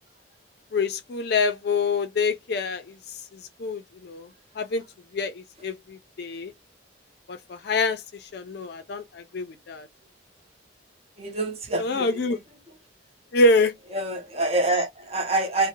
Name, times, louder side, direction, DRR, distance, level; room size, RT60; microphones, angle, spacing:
voice 1, 0.7-3.0 3.3-4.3 4.6-4.8 5.1-6.5 7.3-8.0 8.3-9.9 11.8-12.4 13.3-13.7, left 3 dB, 55° left, 0.4 m, -26 dB
voice 2, 11.2-12.4 13.9-15.7, right 2 dB, 30° right, 0.6 m, -26 dB
2.6 x 2.0 x 2.7 m
head